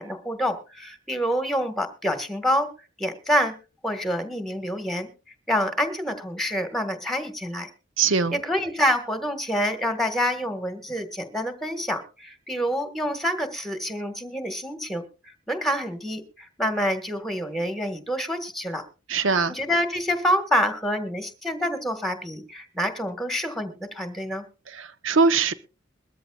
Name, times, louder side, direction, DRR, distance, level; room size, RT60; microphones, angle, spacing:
voice 1, 0.0-2.7 3.0-3.5 3.8-5.1 5.5-7.7 8.3-18.8 19.5-24.4, equal, ahead, 8 dB, 1.6 m, -27 dB
voice 2, 8.0-8.4 19.1-19.5 24.7-25.5, right 4 dB, 75° right, 13 dB, 0.9 m, -22 dB
22.0 x 13.5 x 2.4 m, 0.31 s
head